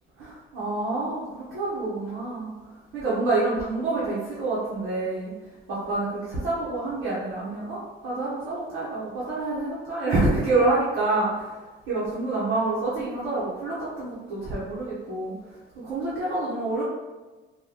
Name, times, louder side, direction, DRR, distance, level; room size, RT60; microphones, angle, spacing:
voice 1, 0.2-5.3 5.7-11.6 11.9-15.3 15.7-16.8, right 2 dB, 90° right, -10 dB, 1.1 m, -27 dB
3.0 x 2.6 x 3.8 m, 1.2 s
cardioid pair, 90°, 20 cm